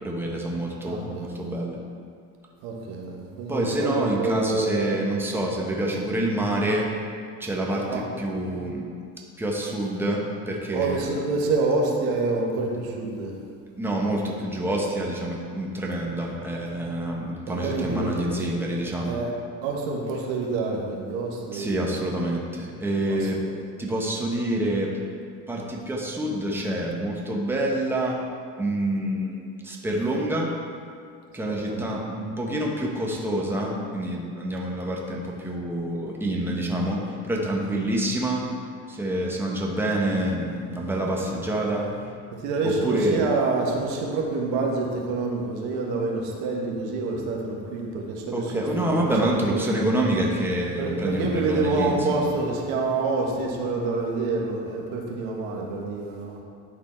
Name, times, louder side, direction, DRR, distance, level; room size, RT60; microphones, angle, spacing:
voice 1, 0.0-1.8 3.5-6.9 7.4-8.9 9.4-11.1 13.8-19.1 21.5-23.4 23.8-25.0 25.5-28.2 28.6-30.5 31.3-38.5 38.9-42.1 42.6-43.3 48.3-52.3, right 1 dB, 5° right, -2 dB, 1.1 m, -27 dB
voice 2, 0.8-1.3 2.6-5.4 7.9-8.0 10.7-13.3 17.5-18.5 19.0-19.3 19.6-21.9 23.0-23.5 31.5-31.9 42.3-49.7 50.8-56.4, right 3 dB, 80° right, 0 dB, 1.4 m, -27 dB
11.0 x 4.2 x 4.4 m, 2.3 s
supercardioid pair, 105°, 34 cm